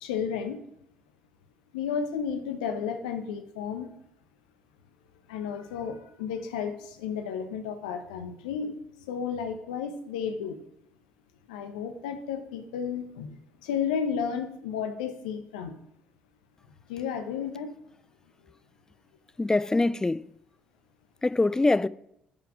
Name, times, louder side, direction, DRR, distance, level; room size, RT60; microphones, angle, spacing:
voice 1, 0.0-0.6 1.7-3.9 5.3-8.7 9.1-10.6 11.5-13.3 13.6-15.7 16.9-17.7, left 7 dB, 70° left, 0.9 m, -32 dB
voice 2, 19.4-20.3 21.2-21.9, left 2 dB, 15° left, 0.3 m, -24 dB
9.4 x 5.8 x 4.8 m
figure-of-eight pair, 50°, 4 cm